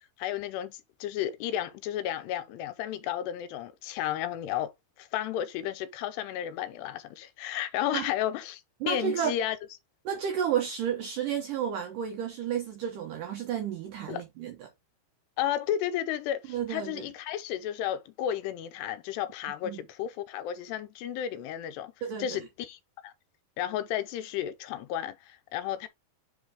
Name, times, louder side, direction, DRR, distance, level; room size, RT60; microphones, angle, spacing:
voice 1, 0.2-4.7 5.0-8.6 8.9-9.6 14.1-14.2 15.4-21.9 22.2-23.1 23.6-25.9, left 11 dB, 85° left, 2.8 m, -33 dB
voice 2, 8.8-9.4 10.1-14.7 16.5-17.1 19.6-19.8 22.0-22.4, right 9 dB, 85° right, 1.9 m, -32 dB
7.7 x 4.1 x 3.5 m
omnidirectional pair, 4.9 m